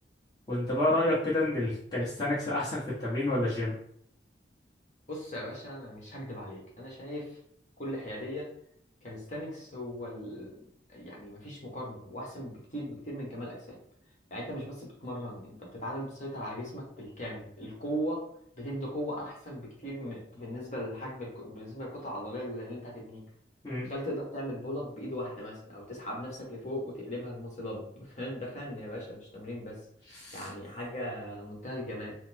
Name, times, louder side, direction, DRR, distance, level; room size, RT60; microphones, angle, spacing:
voice 1, 0.5-3.7 23.6-23.9 30.1-30.5, left 1 dB, 20° left, -8 dB, 1.1 m, -29 dB
voice 2, 5.1-7.4 7.8-8.5 9.0-10.6 10.9-13.8 14.3-18.2 18.6-23.2 23.8-29.8 30.3-32.2, equal, 40° left, -3 dB, 1.3 m, -38 dB
4.1 x 2.1 x 4.3 m, 0.66 s
head